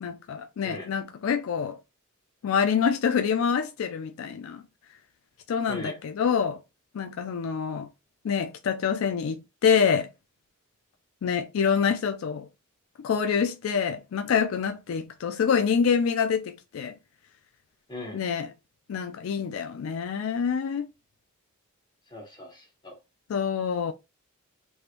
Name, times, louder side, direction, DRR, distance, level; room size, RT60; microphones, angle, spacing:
voice 1, 0.0-1.8 2.4-4.6 5.5-6.6 6.9-7.9 8.2-10.1 11.2-12.5 13.0-16.9 18.1-18.5 18.9-20.9 23.3-23.9, left 6 dB, 70° left, 0.4 m, -26 dB
voice 2, 5.7-6.0 17.9-18.2 22.1-23.0, left 2 dB, 20° left, 1.2 m, -40 dB
3.2 x 3.1 x 2.5 m
head